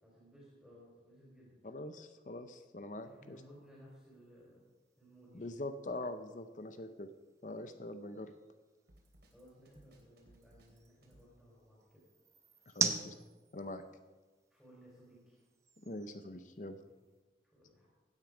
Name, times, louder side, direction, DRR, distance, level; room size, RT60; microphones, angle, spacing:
voice 1, 0.0-1.6 2.9-4.6 5.0-5.5 9.3-12.0 14.5-15.4 17.5-17.9, equal, ahead, -6 dB, 3.8 m, -59 dB
voice 2, 1.6-3.4 5.3-7.1 7.4-8.3 12.7-13.1 13.5-13.8 15.8-16.8, left 2 dB, 45° left, 10 dB, 0.6 m, -43 dB
sound 1, 3.0-17.2, right 4 dB, 15° right, 0.8 m, -45 dB
Drum kit, 8.9-11.3, right 1 dB, 70° right, 3.1 m, -64 dB
16.5 x 9.3 x 5.0 m, 1.3 s
head